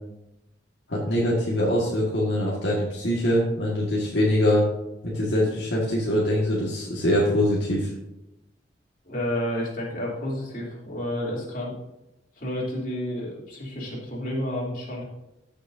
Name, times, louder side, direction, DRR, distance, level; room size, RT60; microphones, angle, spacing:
voice 1, 0.9-4.7 5.0-7.9, left 1 dB, 70° left, -5 dB, 1.9 m, -23 dB
voice 2, 9.0-11.7 12.4-15.0, left 1 dB, 50° left, -4 dB, 3.2 m, -30 dB
15.0 x 6.5 x 2.7 m, 0.93 s
head